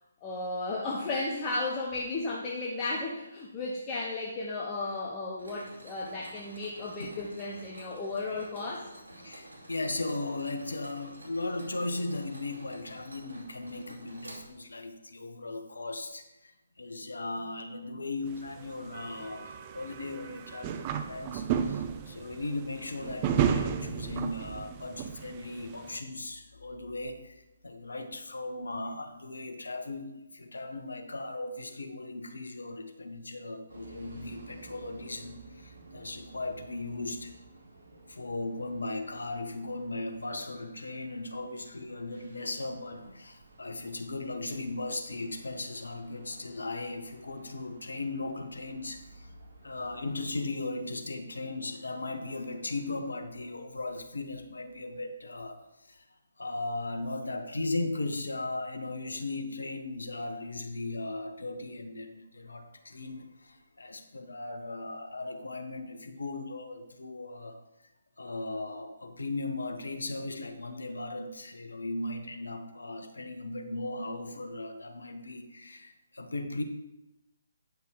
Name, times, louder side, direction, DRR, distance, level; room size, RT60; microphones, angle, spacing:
voice 1, 0.2-8.9, left 2 dB, 20° left, -3 dB, 0.9 m, -34 dB
Mechanisms, 5.4-14.9, right 1 dB, 70° right, 2.5 m, -50 dB
voice 2, 9.2-37.4 37.9-49.3 49.6-56.1 56.4-67.6 68.2-76.6, left 2 dB, 65° left, 6 dB, 1.1 m, -37 dB
sound 1, 18.3-26.0, right 8 dB, 25° right, 0.6 m, -33 dB
sound 2, 33.7-50.3, right 3 dB, 50° right, 3.1 m, -55 dB
9.1 x 5.9 x 4.7 m, 0.96 s
figure-of-eight pair, 140°, 0 cm